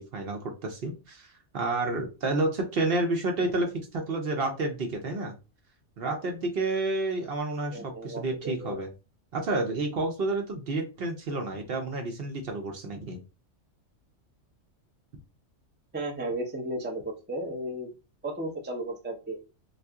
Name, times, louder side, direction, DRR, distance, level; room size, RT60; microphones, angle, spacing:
voice 1, 0.0-5.3 6.0-8.9 9.3-13.2, right 2 dB, 55° right, 4 dB, 0.8 m, -30 dB
voice 2, 7.7-8.8 15.9-17.9 18.2-19.4, right 1 dB, 15° right, 1 dB, 0.4 m, -34 dB
2.7 x 2.4 x 3.4 m, 0.31 s
omnidirectional pair, 1.3 m